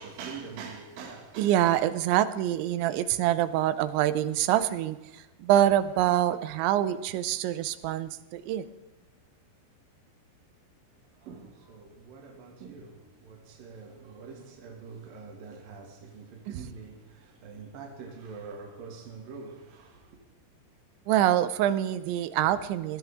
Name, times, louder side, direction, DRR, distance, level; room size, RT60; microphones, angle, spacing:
voice 1, 0.0-1.8 11.0-20.2, right 5 dB, 55° right, 3.6 m, -44 dB
voice 2, 1.4-8.7 16.5-16.6 21.1-23.0, right 12 dB, 90° right, 3.2 m, -25 dB
21.5 x 17.0 x 3.7 m
omnidirectional pair, 5.1 m